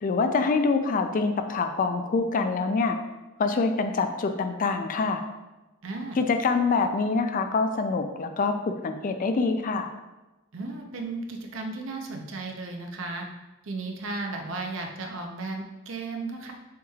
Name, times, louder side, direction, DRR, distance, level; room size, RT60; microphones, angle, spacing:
voice 1, 0.0-3.0 3.4-5.2 6.2-8.5 8.8-9.9, left 4 dB, 40° left, 7 dB, 0.3 m, -25 dB
voice 2, 5.8-6.2 10.5-13.3 13.6-16.5, right 3 dB, 65° right, 2 dB, 0.6 m, -35 dB
7.0 x 3.1 x 2.3 m, 1.1 s
head